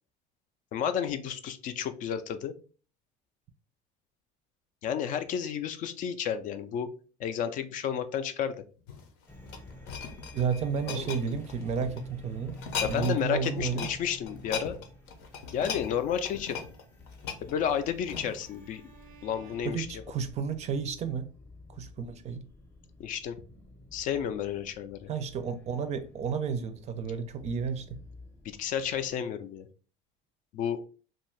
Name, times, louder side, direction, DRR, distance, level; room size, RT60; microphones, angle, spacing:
voice 1, 0.7-2.5 4.8-6.9 7.2-8.6 10.9-11.1 12.8-14.8 15.5-16.6 17.4-18.9 19.2-20.0 23.0-23.4 23.9-25.1 28.6-29.7 30.5-30.8, left 8 dB, 50° left, 0.4 m, -31 dB
sound 1, 8.8-12.0 12.5-13.2 13.4-14.0 14.3-18.5 19.1-19.2, left 6 dB, 80° left, 0.7 m, -38 dB
sound 2, 9.3-29.1, left 1 dB, 10° left, 0.7 m, -50 dB
voice 2, 10.3-12.6 12.9-13.9 19.6-21.3 21.8-22.4 25.1-28.0, right 6 dB, 40° right, 0.4 m, -32 dB
Bowed string instrument, 17.5-20.6, right 9 dB, 90° right, 0.7 m, -58 dB
2.6 x 2.4 x 3.0 m
cardioid pair, 120°, 17 cm